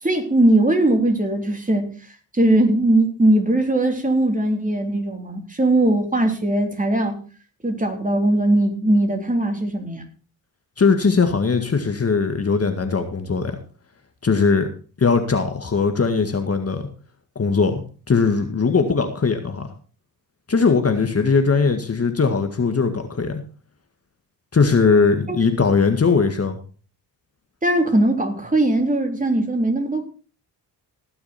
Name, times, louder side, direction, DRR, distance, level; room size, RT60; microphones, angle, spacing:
voice 1, 0.0-1.9 2.3-7.2 7.6-10.0 25.3-25.4 27.6-30.0, right 1 dB, 20° right, 3 dB, 3.5 m, -19 dB
voice 2, 10.8-13.6 14.2-14.7 15.0-16.9 17.4-17.8 18.1-19.7 20.5-23.4 24.5-26.6, left 5 dB, 35° left, 6 dB, 1.9 m, -19 dB
18.0 x 6.9 x 4.4 m, 0.38 s
cardioid pair, 65°, 42 cm